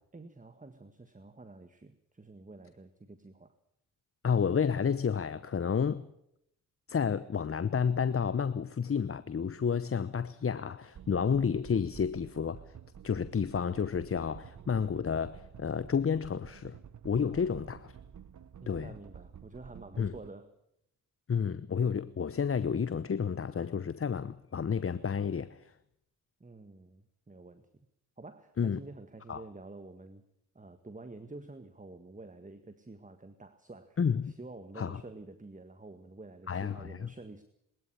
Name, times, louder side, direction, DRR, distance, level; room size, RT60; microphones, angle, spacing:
voice 1, 0.1-3.5 17.3-17.8 18.6-20.5 26.4-27.9 28.2-30.2 30.6-34.0 34.2-37.4, right 2 dB, 20° right, 1.8 m, -49 dB
voice 2, 4.2-6.1 6.9-12.7 13.0-16.8 17.0-17.9 18.7-18.9 20.0-20.2 21.3-25.7 28.6-28.8 29.3-29.4 34.0-34.3 34.8-35.0 36.5-37.1, left 6 dB, 35° left, 0.9 m, -30 dB
sound 1, 11.0-20.3, right 8 dB, 50° right, 1.0 m, -51 dB
22.0 x 13.0 x 10.0 m
supercardioid pair, 45°, 38 cm